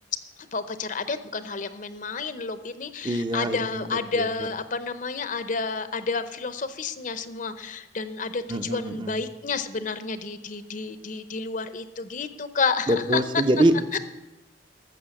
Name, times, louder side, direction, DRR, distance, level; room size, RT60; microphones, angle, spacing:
voice 1, 0.5-13.2 13.9-14.0, left 4 dB, 45° left, 12 dB, 0.7 m, -30 dB
voice 2, 3.0-4.5 8.5-9.2 12.9-14.0, right 1 dB, 25° right, 7 dB, 0.7 m, -25 dB
13.0 x 7.2 x 7.1 m, 1.0 s
head